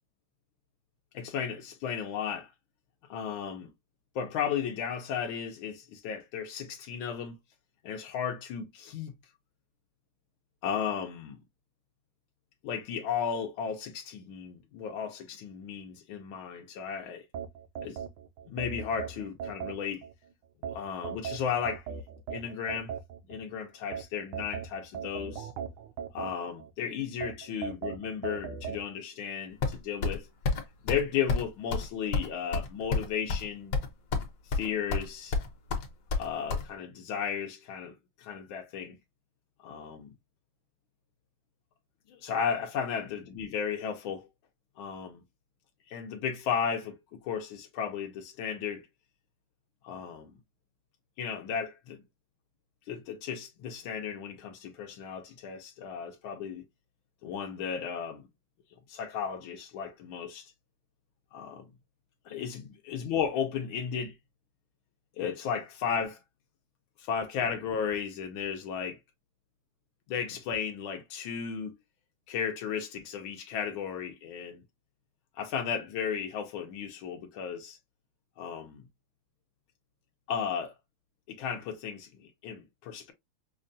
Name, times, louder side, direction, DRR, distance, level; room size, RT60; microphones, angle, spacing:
voice 1, 1.1-2.5 3.1-3.7 4.1-7.4 7.8-9.1 10.6-11.4 12.6-17.2 17.8-18.0 18.5-20.0 20.6-21.8 22.3-22.9 23.3-25.5 26.1-30.3 30.8-33.8 34.5-35.4 36.1-39.0 39.6-40.1 42.1-44.3 44.8-45.2 45.9-47.0 47.2-48.9 49.8-50.3 51.2-52.0 52.9-56.6 57.2-58.3 58.9-60.5 61.3-61.7 62.3-64.1 65.2-66.2 67.0-69.0 70.1-71.8 72.3-74.6 75.4-77.8 78.4-78.9 80.3-80.7 81.3-83.1, left 7 dB, 80° left, 1.5 m, -34 dB
sound 1, 17.3-20.1 20.6-23.4 23.9-26.7 27.2-28.8, right 8 dB, 75° right, 1.1 m, -38 dB
sound 2, 29.6-30.2 30.5-30.6 30.9-31.0 31.3-31.5 31.7-31.9 32.1-33.5 33.7-34.3 34.5-35.1 35.3-36.6, left 4 dB, 60° left, 1.4 m, -29 dB
5.6 x 2.2 x 2.5 m
omnidirectional pair, 2.2 m